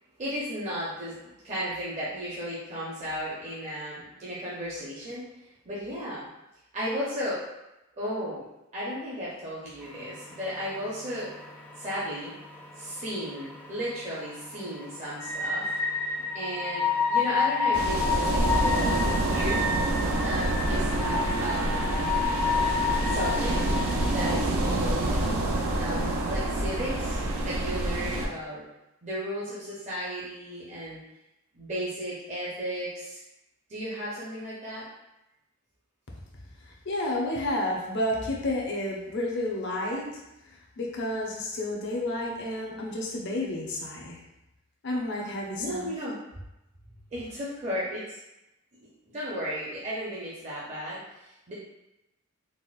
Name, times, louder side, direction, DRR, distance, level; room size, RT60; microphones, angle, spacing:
voice 1, 0.2-6.3 6.7-7.4 8.0-8.5 8.7-11.3 11.8-12.3 12.8-15.7 16.3-19.6 20.2-22.1 23.1-23.6 24.1-25.1 25.8-28.6 29.0-31.0 31.5-33.2 33.7-34.9 45.6-46.1 47.1-48.2 49.0-51.5, equal, 35° right, -8 dB, 0.6 m, -34 dB
sound 1, 9.8-25.7, left 5 dB, 10° left, 0.4 m, -31 dB
sound 2, 17.7-28.3, right 2 dB, 85° right, 0.5 m, -27 dB
voice 2, 36.6-44.2 44.8-45.9, left 1 dB, 55° left, -1 dB, 0.6 m, -31 dB
4.1 x 2.0 x 2.3 m, 0.91 s
head